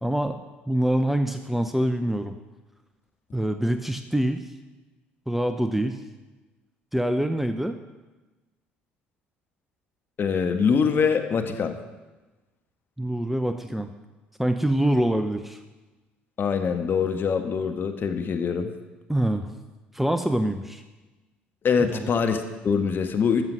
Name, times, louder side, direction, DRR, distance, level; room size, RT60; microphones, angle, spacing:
voice 1, 0.0-0.4 0.7-2.4 3.3-4.4 5.3-6.0 6.9-7.8 13.0-13.9 14.4-15.6 19.1-19.5 19.9-20.8 21.9-22.1, right 1 dB, 5° right, 8 dB, 0.8 m, -25 dB
voice 2, 10.2-11.7 16.4-18.7 21.6-23.4, left 6 dB, 40° left, 6 dB, 1.3 m, -24 dB
13.0 x 7.4 x 6.2 m, 1.2 s
figure-of-eight pair, 60°, 5 cm